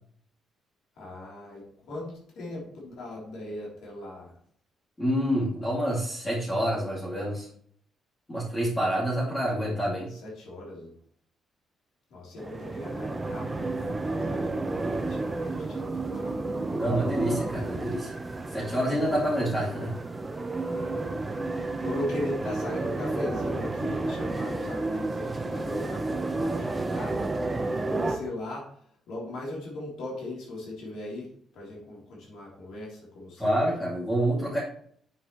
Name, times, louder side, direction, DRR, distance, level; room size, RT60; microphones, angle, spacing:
voice 1, 1.0-4.3 10.1-11.0 12.1-16.5 20.7-21.5 21.8-27.3 27.8-33.6, left 1 dB, 75° left, -4 dB, 3.5 m, -39 dB
voice 2, 5.0-7.5 8.3-10.1 16.7-18.2 18.5-20.0 33.4-34.6, equal, 15° left, -6 dB, 2.7 m, -27 dB
sound 1, 12.4-28.2, right 2 dB, 20° right, 1.0 m, -31 dB
9.2 x 7.2 x 3.2 m, 0.63 s
cardioid pair, 90°, 0 cm